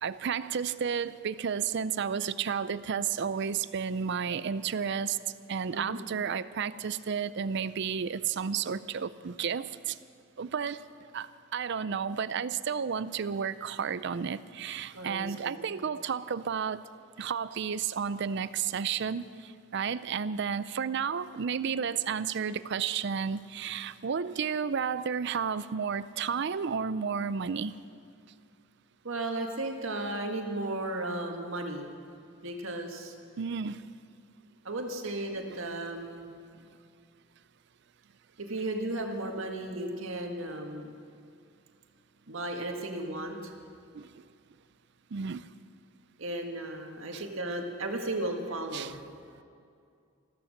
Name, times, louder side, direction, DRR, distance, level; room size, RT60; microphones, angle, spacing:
voice 1, 0.0-5.2 5.5-10.0 10.4-10.8 11.1-16.8 17.2-27.7 33.4-33.8 35.5-35.6 43.9-44.2 45.1-45.5 47.1-47.2 48.7-48.9, right 6 dB, 55° right, 16 dB, 0.5 m, -32 dB
voice 2, 14.9-15.6 29.0-31.9 32.4-33.1 34.6-36.3 38.4-40.9 42.3-43.5 46.2-49.0, right 2 dB, 75° right, 3 dB, 1.8 m, -35 dB
14.5 x 14.0 x 6.5 m, 2.3 s
head